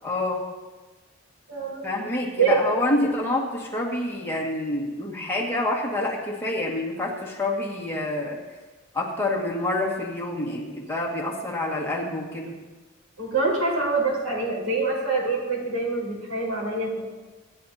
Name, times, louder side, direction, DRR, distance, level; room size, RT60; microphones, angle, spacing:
voice 1, 0.0-0.4 1.8-8.4 8.9-12.6, left 2 dB, 10° left, -3 dB, 1.9 m, -27 dB
voice 2, 1.5-1.8 2.4-2.6 13.2-17.0, right 4 dB, 80° right, -3 dB, 4.7 m, -25 dB
24.5 x 10.5 x 2.8 m, 1.2 s
head